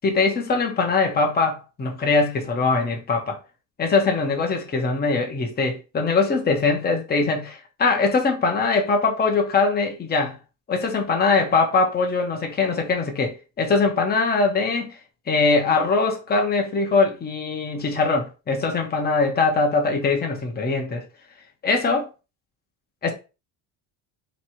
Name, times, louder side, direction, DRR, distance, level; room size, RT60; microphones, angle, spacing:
voice 1, 0.0-3.4 3.8-10.4 10.7-14.9 15.3-21.0 21.6-22.1 23.0-23.1, left 4 dB, 20° left, 0.9 m, -22 dB
3.2 x 3.2 x 4.5 m
cardioid pair, 150°, 46 cm